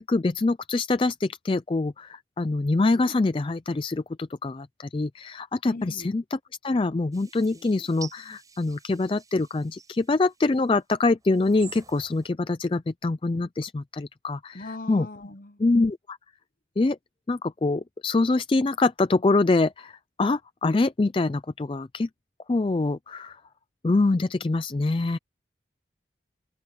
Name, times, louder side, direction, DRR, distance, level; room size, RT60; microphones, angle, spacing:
voice 1, 0.0-15.1 15.6-16.2 16.8-17.0 17.3-22.1 22.5-23.4 23.8-25.2, left 3 dB, 30° left, 0.4 m, -25 dB
voice 2, 5.6-6.1 14.5-15.6, left 2 dB, 50° left, 0.9 m, -39 dB
sound 1, 7.1-10.6 11.2-12.3, right 5 dB, 20° right, 7.2 m, -48 dB
open air
head